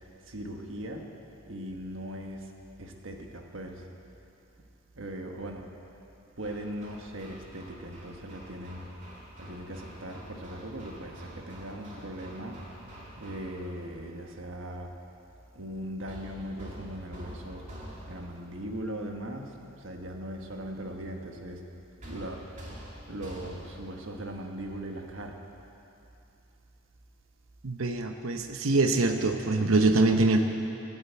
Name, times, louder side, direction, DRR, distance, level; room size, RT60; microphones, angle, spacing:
voice 1, 0.3-1.1 1.5-2.5 2.8-3.8 5.0-5.7 6.4-8.9 9.4-12.6 13.2-14.9 15.5-17.7 18.1-21.6 22.0-22.6 23.1-25.4, right 1 dB, 70° right, 2 dB, 1.4 m, -39 dB
Hammer, 6.4-13.8 16.1-18.5 22.0-23.9, equal, 35° right, 2.2 m, -46 dB
voice 2, 27.6-30.4, right 2 dB, 90° right, 6 dB, 0.8 m, -24 dB
15.5 x 8.8 x 8.1 m, 2.8 s
head